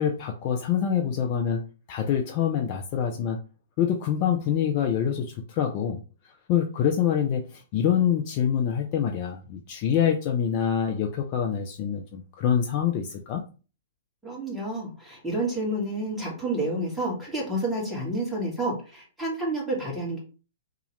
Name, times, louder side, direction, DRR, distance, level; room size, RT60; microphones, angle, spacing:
voice 1, 0.0-1.6 1.9-3.4 3.8-6.0 6.5-13.4, left 8 dB, 40° left, 2 dB, 0.4 m, -25 dB
voice 2, 14.2-20.2, right 1 dB, 5° right, -5 dB, 1.5 m, -29 dB
2.8 x 2.4 x 3.1 m, 0.35 s
figure-of-eight pair, 110°, 0 cm